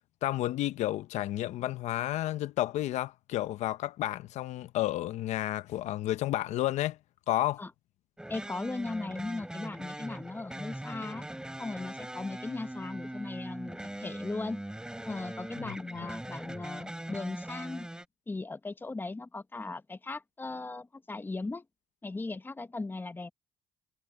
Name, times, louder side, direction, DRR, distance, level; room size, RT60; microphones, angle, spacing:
voice 1, 0.2-7.0 7.3-7.6 15.6-15.7, left 14 dB, 75° left, 0.7 m, -31 dB
sound 1, 8.2-18.1, right 1 dB, 5° right, 4.6 m, -41 dB
voice 2, 8.3-11.3 11.6-14.6 15.0-17.9 18.3-21.6 22.0-23.3, left 3 dB, 15° left, 1.0 m, -38 dB
cardioid pair, 85°, 12 cm